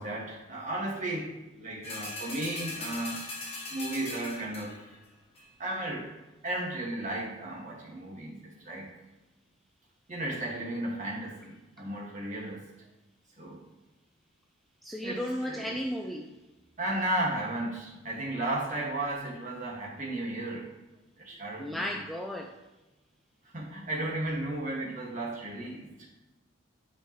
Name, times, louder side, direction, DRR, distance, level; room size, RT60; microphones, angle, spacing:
voice 1, 0.0-3.2 3.7-5.0 5.6-6.1 6.4-8.9 10.1-12.6 13.4-13.6 15.0-15.2 15.5-15.8 16.8-20.7 21.2-22.0 23.5-26.1, right 1 dB, 40° right, -3 dB, 1.7 m, -34 dB
sound 1, 1.8-4.9 5.4-5.5, left 2 dB, 30° left, 1.5 m, -40 dB
voice 2, 14.8-16.3 21.6-22.5, equal, ahead, 1 dB, 0.3 m, -34 dB
10.0 x 5.0 x 3.0 m, 1.1 s
head